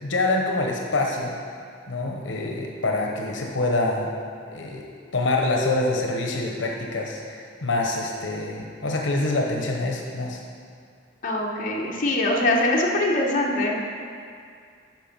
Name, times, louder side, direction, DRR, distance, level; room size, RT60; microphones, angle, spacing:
voice 1, 0.0-1.4 1.9-4.1 4.5-4.8 5.1-10.4, left 2 dB, 85° left, 0 dB, 0.9 m, -26 dB
voice 2, 11.2-13.8, left 1 dB, 45° left, -2 dB, 1.2 m, -23 dB
11.0 x 4.6 x 6.0 m, 2.2 s
head